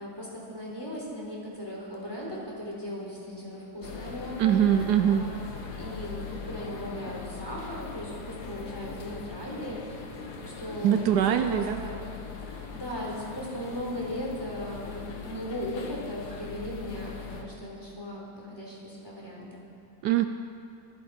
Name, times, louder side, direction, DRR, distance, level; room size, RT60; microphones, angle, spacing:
voice 1, 0.0-4.6 5.1-5.5 5.8-9.8 10.1-12.0 12.4-19.6, equal, 15° left, -5 dB, 3.8 m, -37 dB
sound 1, 3.8-17.4, left 5 dB, 70° left, 1.8 m, -40 dB
voice 2, 4.4-5.3 10.8-11.8 20.0-20.3, right 10 dB, 75° right, 8 dB, 1.1 m, -23 dB
24.0 x 10.5 x 4.3 m, 2.4 s
omnidirectional pair, 1.8 m